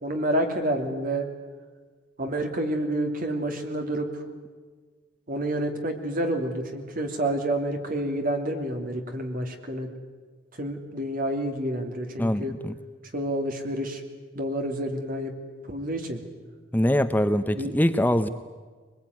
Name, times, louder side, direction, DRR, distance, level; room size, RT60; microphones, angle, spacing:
voice 1, 0.0-1.3 2.2-4.2 5.3-9.9 10.6-12.5 13.1-14.0 14.3-15.3 15.7-16.2 17.5-17.7, right 1 dB, 50° right, 4 dB, 2.9 m, -29 dB
voice 2, 12.2-12.8 16.7-18.3, left 1 dB, 10° left, 10 dB, 0.7 m, -23 dB
23.0 x 21.5 x 9.6 m, 1.4 s
head